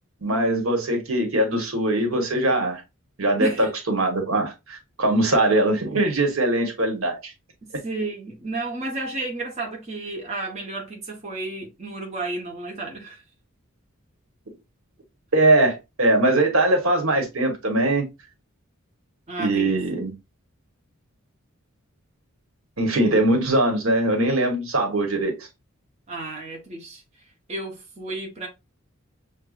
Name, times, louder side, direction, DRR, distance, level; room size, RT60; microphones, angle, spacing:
voice 1, 0.2-2.8 3.2-7.3 15.3-18.1 19.4-20.1 22.8-25.5, right 1 dB, 75° right, 1.1 m, -21 dB
voice 2, 3.4-3.7 7.6-13.2 19.3-19.7 26.1-27.0 27.5-28.5, right 2 dB, 30° right, 0.9 m, -32 dB
6.3 x 2.2 x 2.3 m
head